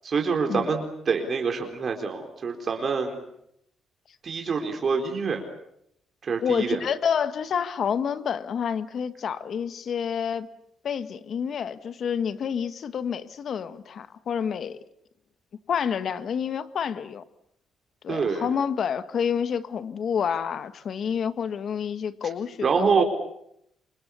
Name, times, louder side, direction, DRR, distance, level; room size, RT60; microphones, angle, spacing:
voice 1, 0.0-3.2 4.2-5.4 6.3-6.8 18.1-18.5 22.6-23.0, right 5 dB, 45° right, 4 dB, 4.0 m, -26 dB
voice 2, 6.4-10.5 10.8-14.8 15.7-17.2 18.0-23.0, left 7 dB, 60° left, 11 dB, 1.8 m, -28 dB
28.0 x 25.5 x 7.1 m, 0.75 s
cardioid pair, 90°, 0 cm